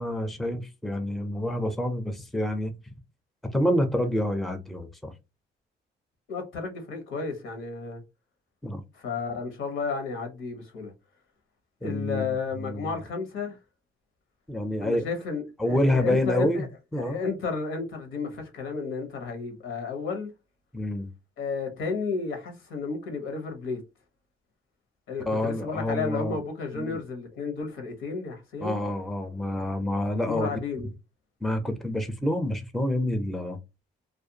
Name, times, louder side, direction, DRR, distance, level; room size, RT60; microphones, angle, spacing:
voice 1, 0.0-2.7 3.5-5.1 8.6-8.8 11.8-12.9 14.5-15.1 15.6-16.6 16.9-17.2 20.7-21.1 25.3-26.4 26.7-27.0 28.6-30.5 31.4-33.6, left 1 dB, ahead, 0.4 m, -28 dB
voice 2, 6.3-8.0 8.9-10.9 11.8-13.6 14.8-16.7 17.0-20.3 21.4-23.8 25.1-28.8 30.2-30.9, left 4 dB, 80° left, 1.0 m, -32 dB
2.5 x 2.2 x 2.7 m
cardioid pair, 90°, 20 cm